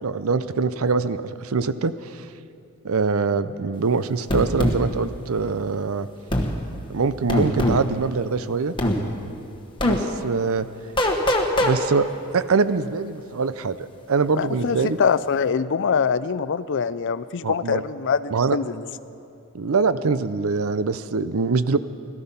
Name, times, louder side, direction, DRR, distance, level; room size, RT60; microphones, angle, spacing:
voice 1, 0.0-2.3 2.8-6.1 6.9-8.7 9.8-10.7 11.6-12.1 12.3-15.0 17.4-17.8 18.3-18.6 19.5-21.8, right 4 dB, 65° right, 13 dB, 0.6 m, -23 dB
sound 1, 4.3-4.8 6.3-6.5 7.3-7.8 8.8-9.0 9.8-10.0 11.0-11.7, left 1 dB, 20° left, 1.3 m, -21 dB
voice 2, 14.4-18.9, left 6 dB, 55° left, 15 dB, 0.4 m, -24 dB
18.0 x 13.5 x 5.7 m, 2.5 s
head